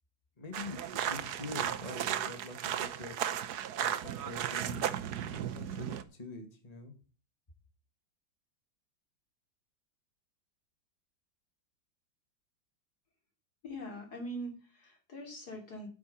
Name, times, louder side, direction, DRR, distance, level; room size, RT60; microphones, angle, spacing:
voice 1, 0.4-6.9, left 2 dB, 20° left, 5 dB, 2.0 m, -46 dB
sound 1, 0.5-6.0, right 10 dB, 60° right, 1.2 m, -35 dB
voice 2, 13.6-15.9, equal, 50° left, 3 dB, 3.5 m, -42 dB
8.7 x 8.5 x 6.8 m, 0.38 s
omnidirectional pair, 2.2 m